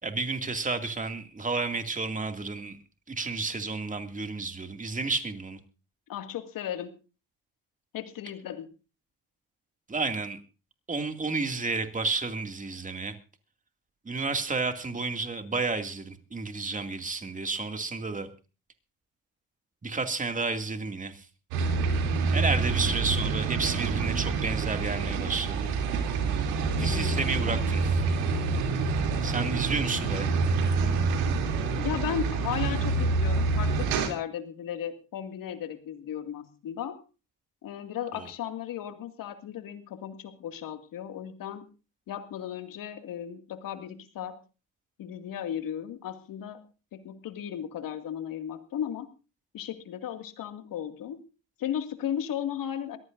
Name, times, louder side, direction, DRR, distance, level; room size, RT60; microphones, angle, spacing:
voice 1, 0.0-2.8 3.1-5.6 9.9-10.4 10.9-13.1 14.0-18.3 19.8-21.3 22.3-25.7 26.8-28.0 29.2-30.3 38.1-38.3, right 3 dB, 20° right, 6 dB, 2.4 m, -31 dB
voice 2, 6.1-6.9 7.9-8.7 26.8-27.2 31.8-37.0 37.6-41.6 42.1-44.4 45.0-46.6 46.9-49.1 49.5-51.2 51.6-53.0, left 10 dB, 65° left, 7 dB, 2.3 m, -35 dB
sound 1, 21.5-34.1, right 4 dB, 85° right, 3.1 m, -27 dB
22.5 x 15.0 x 2.6 m, 0.33 s
supercardioid pair, 75°, 36 cm